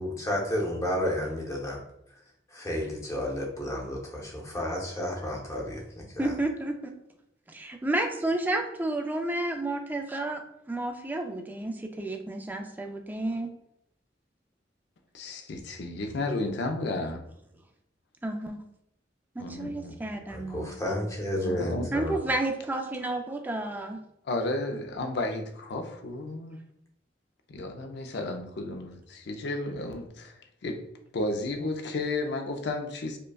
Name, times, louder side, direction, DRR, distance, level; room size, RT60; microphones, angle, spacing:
voice 1, 0.0-1.8 2.5-6.3 20.3-22.2, left 1 dB, 15° left, -1 dB, 0.8 m, -31 dB
voice 2, 6.2-6.9 7.5-10.4 10.7-13.5 18.2-18.6 19.3-21.1 21.9-24.0, right 2 dB, 10° right, 3 dB, 0.4 m, -31 dB
voice 3, 15.1-17.3 19.4-20.0 21.3-21.9 24.3-26.6 27.5-30.3 30.6-30.8 31.1-33.2, left 2 dB, 65° left, 5 dB, 0.5 m, -33 dB
5.1 x 2.2 x 2.3 m, 0.78 s
head